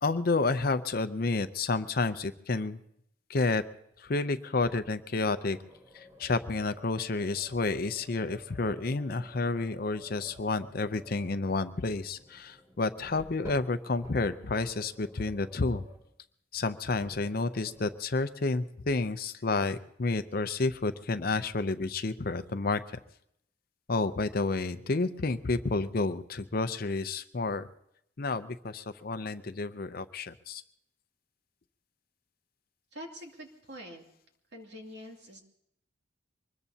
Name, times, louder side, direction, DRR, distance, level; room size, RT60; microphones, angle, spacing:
voice 1, 0.0-2.8 3.3-3.6 4.0-5.6 5.9-15.8 16.5-22.8 23.9-27.7 28.2-30.6, left 3 dB, 50° left, 10 dB, 0.6 m, -30 dB
sound 1, 4.6-5.0 5.4-16.1 17.0-18.0, left 1 dB, 15° right, 3.0 m, -52 dB
voice 2, 32.9-34.0 34.5-35.4, equal, 60° right, 1 dB, 2.7 m, -45 dB
24.0 x 20.5 x 2.8 m, 0.74 s
head